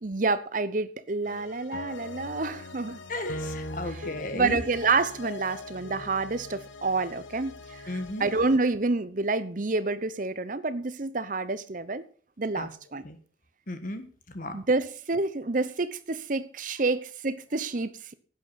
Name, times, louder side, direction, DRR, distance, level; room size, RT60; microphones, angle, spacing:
voice 1, 0.0-3.0 3.8-12.0 12.4-13.1 14.5-18.1, right 3 dB, 45° right, 0.8 m, -28 dB
sound 1, 1.2-8.6, left 1 dB, 80° left, 1.1 m, -40 dB
voice 2, 3.1-4.6 7.9-8.3 12.5-12.7 13.0-13.2 13.7-14.1 14.3-14.5, left 1 dB, 45° left, 1.5 m, -35 dB
11.5 x 8.8 x 5.7 m
head